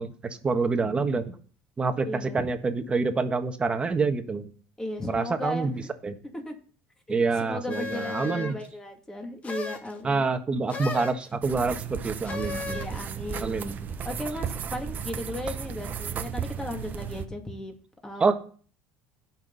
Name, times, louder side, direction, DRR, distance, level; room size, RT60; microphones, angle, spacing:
voice 1, 0.0-1.4 1.8-4.5 5.1-5.7 6.0-6.1 7.1-8.6 10.0-12.8 13.4-13.8 18.2-18.4, right 4 dB, 25° right, 7 dB, 1.4 m, -27 dB
voice 2, 2.0-2.4 4.8-5.7 6.3-6.5 7.1-10.2 12.7-13.7 14.0-17.7 18.0-18.3, left 1 dB, 10° left, 3 dB, 2.6 m, -36 dB
sound 1, 7.7-8.7 9.4-9.9 10.7-11.3 12.2-13.0, left 4 dB, 30° left, 1.9 m, -35 dB
sound 2, 11.4-17.3, right 7 dB, 40° right, 1.1 m, -35 dB
17.0 x 6.1 x 4.1 m, 0.41 s
supercardioid pair, 110°, 5 cm